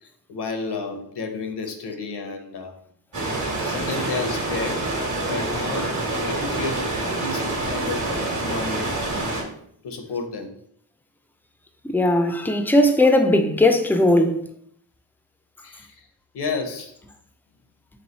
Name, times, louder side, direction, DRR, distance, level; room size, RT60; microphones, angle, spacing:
voice 1, 0.0-2.7 3.7-4.9 5.2-6.9 7.2-9.2 9.8-10.5 15.6-16.1 16.3-16.9, left 4 dB, 80° left, 0.8 m, -31 dB
sound 1, 3.1-9.4, right 2 dB, 50° right, 1.2 m, -26 dB
voice 2, 11.9-14.4, left 1 dB, 5° left, 0.4 m, -18 dB
3.5 x 3.1 x 4.0 m
wide cardioid pair, 90°, 39 cm